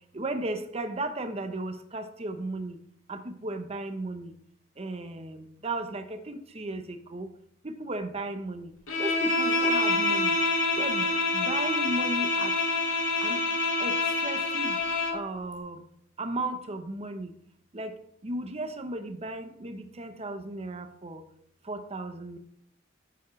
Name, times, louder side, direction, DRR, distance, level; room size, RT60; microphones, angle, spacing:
voice 1, 0.1-2.8 3.1-4.3 4.8-7.3 7.6-8.7 9.0-10.4 10.8-12.5 13.2-13.4 13.8-14.8 15.1-15.8 16.2-17.3 17.7-17.9 18.2-21.2 21.7-22.4, right 2 dB, 30° right, 8 dB, 0.8 m, -35 dB
Bowed string instrument, 8.9-15.2, left 3 dB, 80° left, 2.1 m, -26 dB
9.3 x 7.1 x 3.1 m, 0.66 s
head